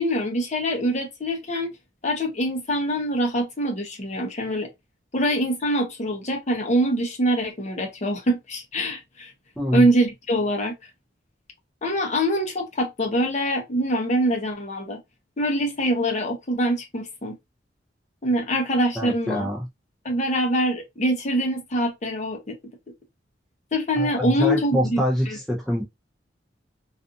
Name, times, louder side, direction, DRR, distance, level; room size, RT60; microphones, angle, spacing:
voice 1, 0.0-1.7 2.0-4.7 5.1-9.3 9.7-10.7 11.8-15.0 15.4-17.3 18.2-19.5 20.0-22.6 23.7-25.4, equal, 40° left, 0.8 m, -24 dB
voice 2, 9.6-9.9 19.0-19.7 24.0-25.8, equal, ahead, 0.6 m, -25 dB
2.5 x 2.4 x 2.6 m
head